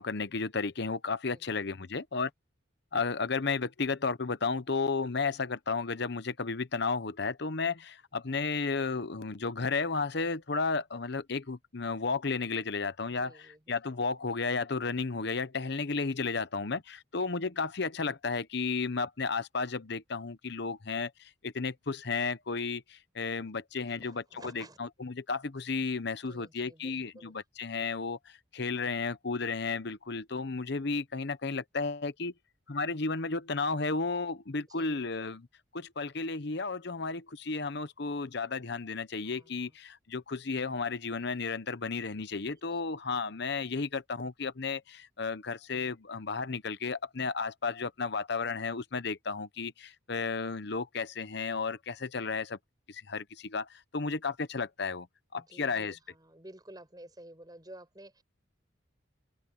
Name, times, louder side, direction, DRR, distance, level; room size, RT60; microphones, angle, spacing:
voice 1, 0.0-2.3 2.9-13.3 13.7-21.1 21.4-22.8 23.1-24.2 24.5-28.2 28.5-32.3 32.7-35.5 35.7-52.6 52.9-53.7 53.9-55.1 55.3-56.0, left 4 dB, 55° left, 0.9 m, -33 dB
voice 2, 1.3-1.7 13.1-13.8 23.4-23.5 23.9-24.8 26.3-27.4 34.7-35.0 39.2-39.8 42.7-42.8 55.3-58.2, right 1 dB, 20° right, 7.2 m, -52 dB
open air
head